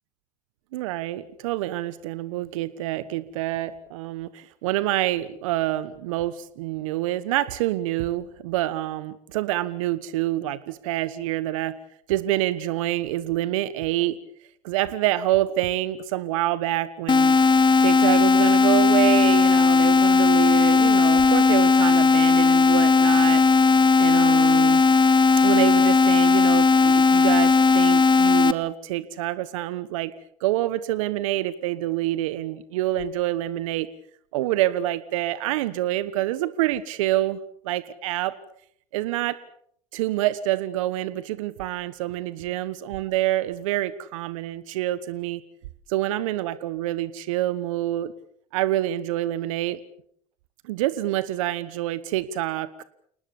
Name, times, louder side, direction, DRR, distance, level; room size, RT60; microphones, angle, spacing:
voice 1, 0.7-11.8 12.1-14.2 14.6-17.4 17.8-23.4 24.0-24.8 25.4-30.1 30.4-33.9 34.3-37.4 37.6-38.3 38.9-39.3 39.9-45.4 45.9-48.1 48.5-49.8 50.6-52.8, right 14 dB, 80° right, 15 dB, 1.3 m, -27 dB
sound 1, 17.1-28.5, left 4 dB, 30° left, 1.9 m, -17 dB
29.5 x 19.5 x 7.2 m, 0.66 s
hypercardioid pair, 65°, 17 cm